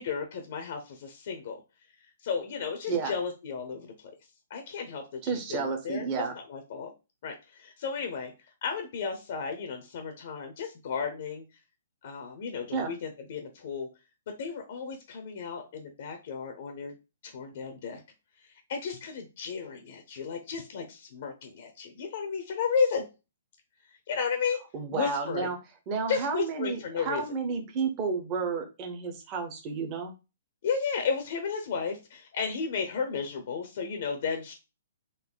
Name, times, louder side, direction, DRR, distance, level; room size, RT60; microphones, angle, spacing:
voice 1, 0.0-1.6 2.2-4.1 4.5-6.9 7.2-8.3 8.6-11.4 12.0-13.9 14.4-16.9 17.2-18.0 18.7-23.0 24.1-24.6 24.9-25.5 26.1-27.2 30.6-34.5, left 5 dB, 50° left, 5 dB, 0.8 m, -33 dB
voice 2, 5.2-6.3 12.7-12.9 24.7-25.6 25.9-30.1, right 5 dB, 25° right, 4 dB, 0.9 m, -31 dB
4.0 x 2.7 x 3.9 m, 0.28 s
hypercardioid pair, 165°, 0 cm